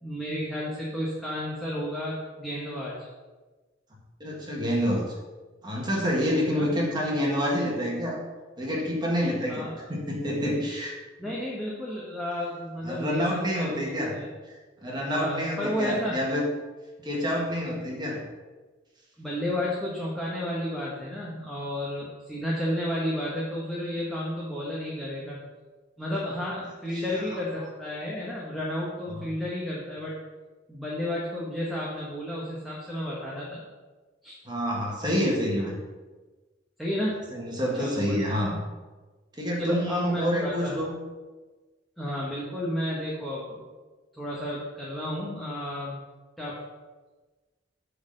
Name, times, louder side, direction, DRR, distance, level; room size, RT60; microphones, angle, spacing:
voice 1, 0.0-3.1 6.5-6.7 9.5-9.8 11.2-14.3 15.1-16.2 19.2-25.4 26.0-30.1 30.7-33.6 34.2-34.3 36.8-37.2 37.8-38.4 39.6-40.8 42.0-43.6 44.1-46.0 46.4-46.6, left 1 dB, ahead, -6 dB, 1.2 m, -32 dB
voice 2, 4.2-5.1 5.6-8.2 8.6-11.0 12.8-14.1 14.5-16.5 17.0-18.2 26.9-27.0 34.5-35.8 37.3-38.6 39.3-40.9, equal, 25° right, -3 dB, 1.8 m, -28 dB
7.8 x 4.1 x 6.6 m, 1.3 s
head